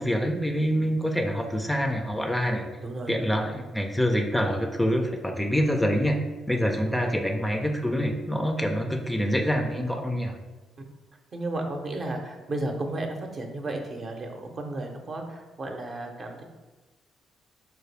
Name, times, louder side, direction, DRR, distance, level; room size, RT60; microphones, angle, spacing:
voice 1, 0.0-2.7 3.1-6.2 6.5-10.3, equal, 5° left, 3 dB, 0.4 m, -26 dB
voice 2, 2.8-3.1 6.8-7.2 8.7-9.0 11.3-16.4, right 2 dB, 45° right, 3 dB, 0.7 m, -34 dB
4.5 x 2.2 x 3.2 m, 1.2 s
supercardioid pair, 60°, 0 cm